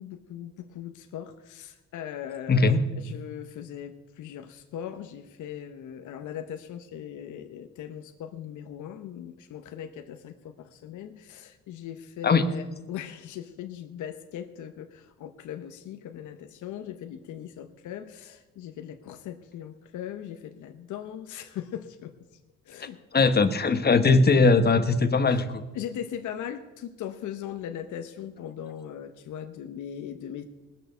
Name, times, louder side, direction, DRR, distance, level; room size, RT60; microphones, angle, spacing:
voice 1, 0.0-22.1 22.7-23.5 25.7-30.4, left 10 dB, 75° left, 8 dB, 0.9 m, -39 dB
voice 2, 2.5-2.8 12.2-12.4 23.1-25.6, left 4 dB, 35° left, 10 dB, 1.1 m, -20 dB
19.5 x 6.6 x 6.7 m, 1.1 s
cardioid pair, 90°, 30 cm